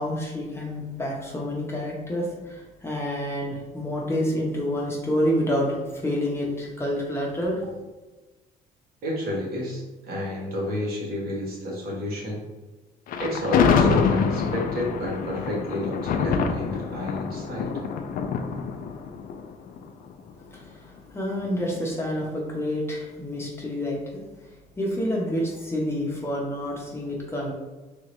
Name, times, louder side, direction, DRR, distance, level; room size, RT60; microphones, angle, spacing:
voice 1, 0.0-7.7 20.5-24.2 24.8-27.5, equal, 15° left, -3 dB, 0.8 m, -28 dB
voice 2, 9.0-12.4 13.2-17.7, left 1 dB, 65° right, -3 dB, 1.3 m, -30 dB
Thunder, 13.1-20.3, left 6 dB, 55° left, 0.4 m, -25 dB
3.4 x 2.7 x 3.1 m, 1.2 s
cardioid pair, 110°, 17 cm